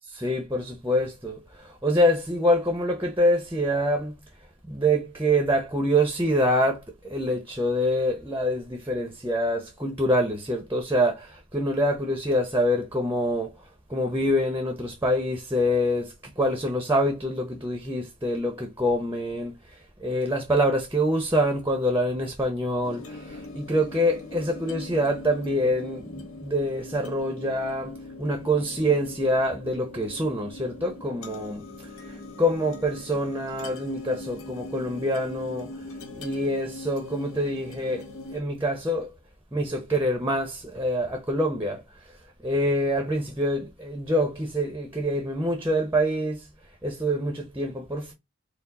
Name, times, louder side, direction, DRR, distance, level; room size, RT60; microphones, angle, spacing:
voice 1, 0.1-4.2 4.7-13.5 13.9-31.6 32.1-35.7 36.2-38.0 38.3-39.1 39.5-41.8 42.4-46.4 46.8-48.1, equal, 10° right, 0.7 m, -26 dB
sound 1, 22.8-38.4, left 2 dB, 85° left, 1.3 m, -41 dB
4.4 x 2.1 x 4.0 m
head